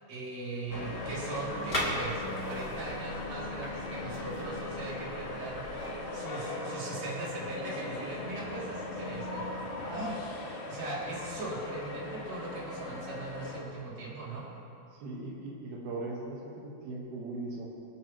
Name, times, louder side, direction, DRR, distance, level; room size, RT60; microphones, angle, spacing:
voice 1, 0.1-9.5 9.9-10.2 10.7-14.5, right 2 dB, 45° right, -6 dB, 3.8 m, -39 dB
sound 1, 0.7-13.6, left 2 dB, 60° left, 2.9 m, -39 dB
sound 2, 0.7-5.7, left 1 dB, 25° left, 1.4 m, -39 dB
voice 2, 5.7-6.0 15.0-17.7, right 2 dB, 80° right, -4 dB, 3.4 m, -39 dB
sound 3, 6.3-9.0, equal, 80° left, 3.5 m, -48 dB
26.0 x 8.9 x 3.1 m, 2.7 s
omnidirectional pair, 4.4 m